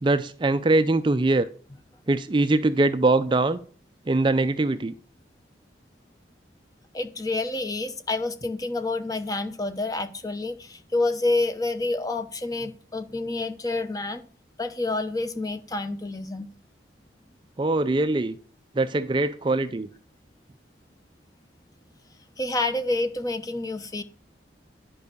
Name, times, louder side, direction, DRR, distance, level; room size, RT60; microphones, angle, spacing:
voice 1, 0.0-1.5 2.1-3.6 4.1-4.9 17.6-18.4 18.7-19.9, right 2 dB, 25° right, 0.4 m, -22 dB
voice 2, 6.9-14.2 14.6-16.5 22.4-24.0, left 2 dB, 20° left, 0.8 m, -28 dB
11.0 x 5.5 x 6.7 m
head